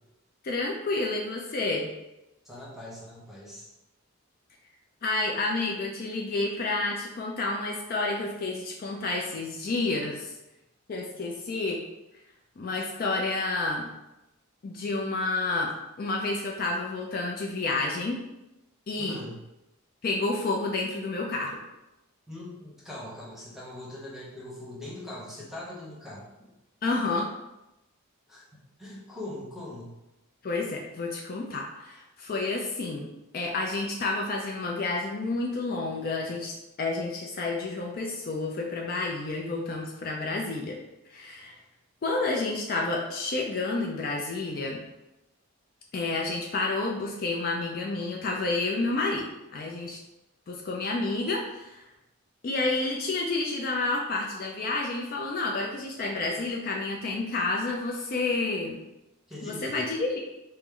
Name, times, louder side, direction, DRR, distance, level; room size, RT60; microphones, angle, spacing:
voice 1, 0.4-1.9 5.0-10.3 10.9-11.8 12.6-13.9 14.6-15.7 16.0-18.2 18.9-19.2 20.0-21.6 26.8-27.3 30.4-33.1 33.3-40.8 41.1-41.6 42.0-44.8 45.9-49.2 49.5-50.0 50.5-51.8 52.4-58.8 59.4-60.2, left 3 dB, 45° left, 0 dB, 0.4 m, -30 dB
voice 2, 2.4-3.7 19.0-19.4 22.3-26.5 28.3-28.4 28.8-29.9 59.3-59.8, left 1 dB, ahead, -5 dB, 0.8 m, -41 dB
4.3 x 2.0 x 3.6 m, 0.94 s
head